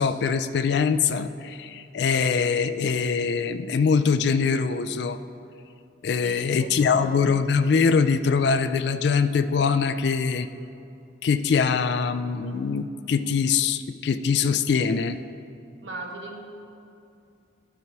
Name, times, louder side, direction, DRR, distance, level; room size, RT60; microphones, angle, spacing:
voice 1, 0.0-5.2 6.0-10.5 11.2-15.2, left 5 dB, 60° left, 12 dB, 0.3 m, -23 dB
voice 2, 6.2-7.1 15.8-16.4, right 2 dB, 75° right, 1 dB, 1.0 m, -37 dB
10.5 x 4.6 x 5.4 m, 2.6 s
head